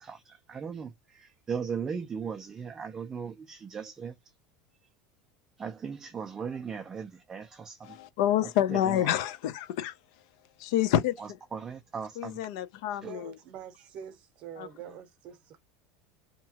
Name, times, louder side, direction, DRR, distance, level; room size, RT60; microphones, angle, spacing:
voice 1, 0.0-4.1 5.6-7.8 11.5-12.4, right 6 dB, 15° right, 0.3 m, -37 dB
voice 2, 7.8-9.9 10.6-11.4 12.2-13.3 14.6-14.7, left 11 dB, 65° left, 0.4 m, -28 dB
voice 3, 13.0-15.6, right 9 dB, 40° right, 0.7 m, -45 dB
2.8 x 2.2 x 2.7 m
supercardioid pair, 165°, 3 cm